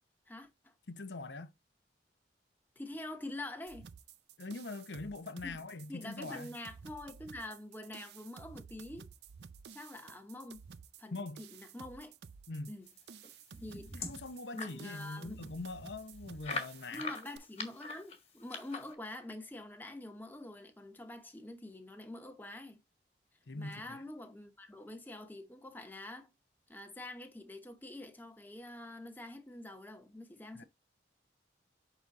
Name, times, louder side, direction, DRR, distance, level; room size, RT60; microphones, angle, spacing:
voice 1, 0.3-0.7 2.8-3.9 5.4-5.6 5.9-9.1 9.7-10.6 11.0-12.1 12.7-12.9 13.6-14.0 14.5-15.4 16.9-22.8 23.6-26.3 26.7-30.6, left 1 dB, 10° left, 0.9 m, -46 dB
voice 2, 0.9-1.5 4.4-6.5 11.1-11.4 12.5-12.7 13.9-17.0 23.5-24.0 30.6-30.7, left 3 dB, 80° left, 0.8 m, -43 dB
sound 1, 3.7-17.4, right 6 dB, 65° right, 0.5 m, -53 dB
sound 2, 13.2-14.8 15.3-15.4 15.6-15.7 16.4-18.9, left 4 dB, 35° left, 1.6 m, -42 dB
6.1 x 4.0 x 4.1 m
head